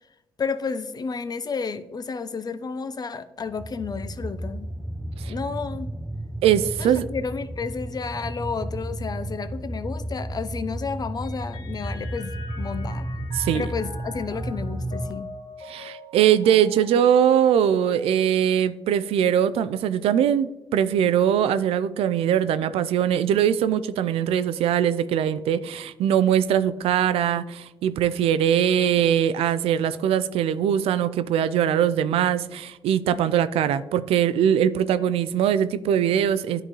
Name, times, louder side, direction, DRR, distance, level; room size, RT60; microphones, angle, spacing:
voice 1, 0.4-4.7 5.3-5.9 6.8-13.1 13.5-15.3, left 5 dB, 40° left, 13 dB, 0.6 m, -31 dB
sound 1, 3.5-15.1, right 1 dB, 10° right, 0.5 m, -33 dB
voice 2, 6.4-7.1 13.3-13.7 15.7-36.6, right 9 dB, 80° right, 14 dB, 0.3 m, -21 dB
Mallet percussion, 11.2-19.0, left 1 dB, 75° left, 0.9 m, -43 dB
10.5 x 3.8 x 3.1 m, 0.99 s
supercardioid pair, 55°, 10 cm